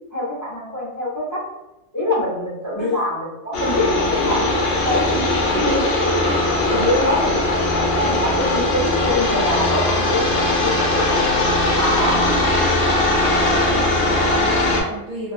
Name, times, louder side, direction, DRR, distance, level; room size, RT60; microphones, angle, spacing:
voice 1, 0.1-1.4 1.9-4.5 4.8-6.1 6.7-11.2 11.7-12.3, left 1 dB, 15° left, -9 dB, 0.8 m, -24 dB
sound 1, 3.5-14.8, left 2 dB, 60° left, 0.7 m, -19 dB
voice 2, 13.3-15.3, right 2 dB, 55° right, -6 dB, 0.4 m, -33 dB
2.4 x 2.4 x 2.4 m, 0.97 s
omnidirectional pair, 1.3 m